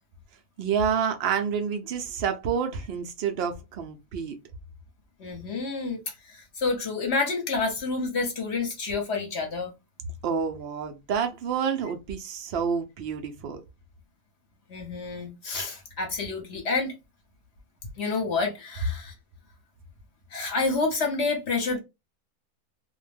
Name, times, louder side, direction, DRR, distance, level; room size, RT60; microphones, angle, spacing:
voice 1, 0.6-4.3 10.2-13.6, right 7 dB, 80° right, 0.5 m, -28 dB
voice 2, 5.2-9.7 14.7-16.9 18.0-19.1 20.3-21.8, left 4 dB, 55° left, 0.9 m, -29 dB
2.4 x 2.1 x 3.2 m
omnidirectional pair, 1.6 m